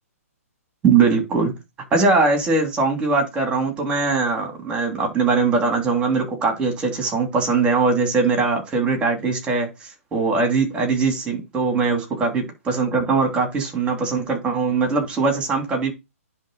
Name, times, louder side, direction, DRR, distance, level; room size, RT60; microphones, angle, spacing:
voice 1, 0.8-1.5 1.9-15.9, right 4 dB, 15° right, 3.0 m, -21 dB
10.0 x 3.7 x 6.6 m
hypercardioid pair, 155°, 8 cm